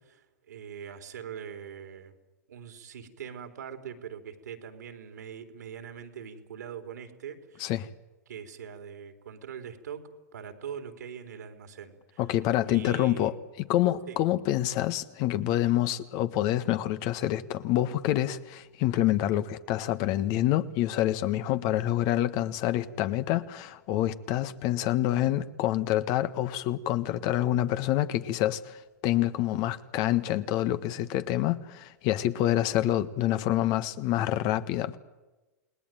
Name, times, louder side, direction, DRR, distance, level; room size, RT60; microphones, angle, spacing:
voice 1, 0.0-2.1 2.5-7.8 8.3-12.2 12.7-13.3 14.1-14.2, right 7 dB, 75° right, 3.6 m, -42 dB
voice 2, 12.2-35.0, left 13 dB, 45° left, 1.4 m, -27 dB
29.0 x 19.5 x 9.1 m
hypercardioid pair, 105°, 9 cm